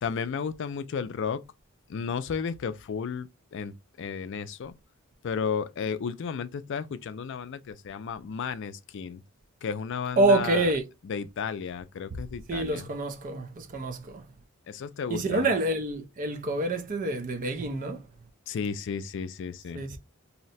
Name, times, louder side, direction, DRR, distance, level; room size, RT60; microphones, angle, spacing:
voice 1, 0.0-1.4 1.9-4.7 5.2-9.2 9.6-10.7 11.0-12.9 14.7-15.5 18.5-19.8, left 6 dB, 55° left, 0.4 m, -33 dB
voice 2, 10.2-10.8 12.5-14.2 15.1-18.0 19.7-20.0, right 2 dB, 35° right, 0.4 m, -27 dB
2.7 x 2.1 x 4.0 m
head